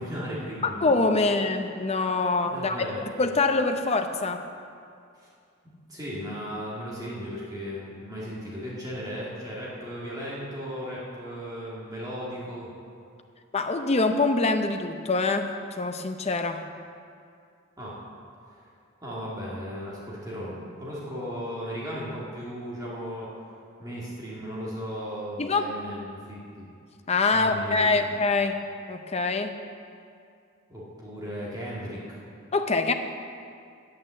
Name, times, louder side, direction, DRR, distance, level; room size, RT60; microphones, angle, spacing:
voice 1, 0.0-0.8 2.5-3.0 5.2-5.3 5.6-12.7 17.8-18.0 18.5-18.6 19.0-23.3 23.8-26.7 27.3-28.1 30.7-32.2, equal, 20° right, -7 dB, 2.1 m, -36 dB
voice 2, 0.6-2.8 3.2-4.4 13.5-16.6 25.4-25.7 27.1-28.6 28.9-29.5 32.5-32.9, left 3 dB, 30° left, 6 dB, 0.7 m, -24 dB
9.2 x 8.6 x 7.4 m, 2.4 s
head